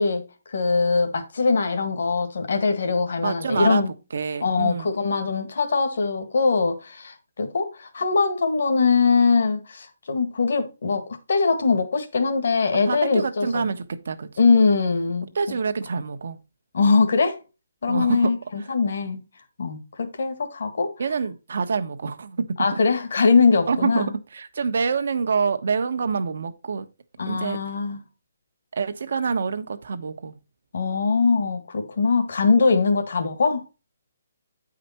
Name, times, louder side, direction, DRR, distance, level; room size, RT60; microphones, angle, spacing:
voice 1, 0.0-3.9 4.4-13.7 14.4-15.6 16.7-17.4 17.8-19.2 19.6-20.9 22.6-24.1 27.2-28.0 30.7-33.6, left 4 dB, 65° left, 1.8 m, -22 dB
voice 2, 3.2-3.8 4.1-4.9 12.9-14.3 15.3-16.4 17.9-18.3 21.0-22.5 23.7-26.8 27.3-27.6 28.7-30.4, right 5 dB, 60° right, 1.1 m, -26 dB
9.2 x 5.0 x 4.3 m
hypercardioid pair, 170°, 0 cm